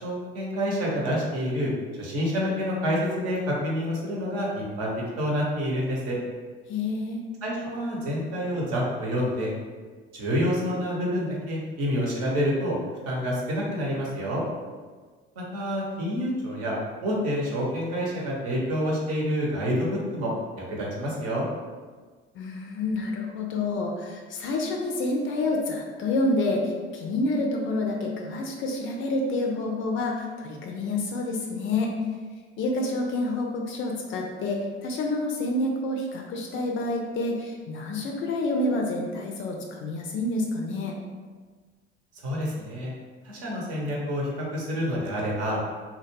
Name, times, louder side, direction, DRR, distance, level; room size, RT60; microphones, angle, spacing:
voice 1, 0.0-1.7 2.0-6.2 7.4-9.5 10.1-12.8 13.0-14.4 15.5-21.5 42.2-42.9 43.2-45.6, equal, 50° right, -4 dB, 0.8 m, -28 dB
voice 2, 6.7-7.2 22.3-31.9 32.6-40.9, left 2 dB, 40° left, 1 dB, 0.4 m, -28 dB
2.2 x 2.1 x 3.2 m, 1.5 s
figure-of-eight pair, 55°, 31 cm